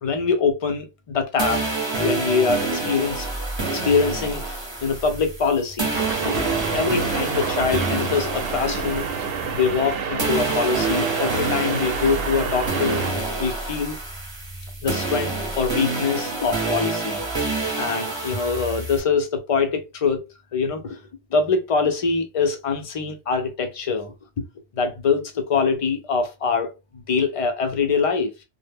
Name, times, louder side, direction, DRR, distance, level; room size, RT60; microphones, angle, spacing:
voice 1, 0.0-1.6 2.0-3.3 3.7-6.0 6.2-9.1 9.5-13.0 13.4-14.0 14.8-17.2 17.8-20.3 20.5-21.0 21.3-24.4 24.7-28.3, left 5 dB, 60° left, 0.3 m, -24 dB
sound 1, 1.4-9.9 10.2-19.0, right 3 dB, 30° right, 0.7 m, -27 dB
sound 2, 5.9-13.1, right 6 dB, 65° right, 0.7 m, -29 dB
2.0 x 2.0 x 3.3 m
omnidirectional pair, 1.2 m